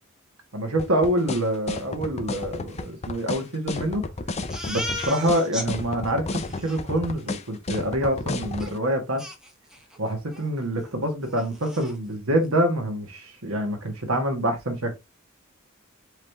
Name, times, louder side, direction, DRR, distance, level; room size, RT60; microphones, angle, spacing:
voice 1, 0.5-4.0 4.6-9.2 10.0-14.9, right 1 dB, 85° right, 1.5 m, -26 dB
sound 1, 0.8-8.7, left 3 dB, 30° left, 0.6 m, -31 dB
Crying sobbing, 4.5-5.7 6.1-6.2 6.4-6.8 8.6-8.7 9.2-10.0 10.3-10.5 10.8-10.9 11.3-12.0, equal, 5° right, 0.9 m, -35 dB
4.8 x 3.2 x 3.4 m
head